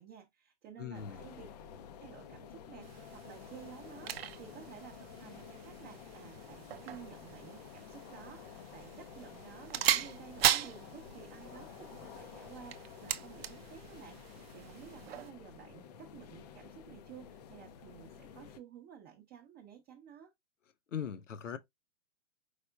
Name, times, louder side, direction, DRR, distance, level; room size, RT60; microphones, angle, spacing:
voice 1, 0.0-1.5 2.0-14.2 14.5-20.3, right 8 dB, 25° right, 0.8 m, -53 dB
voice 2, 0.8-1.2 20.9-21.6, left 8 dB, 90° left, 0.8 m, -39 dB
sound 1, 0.9-18.6, left 8 dB, 35° left, 0.5 m, -51 dB
sound 2, 2.8-15.3, right 11 dB, 55° right, 0.6 m, -38 dB
4.9 x 4.1 x 2.2 m
hypercardioid pair, 135°, 36 cm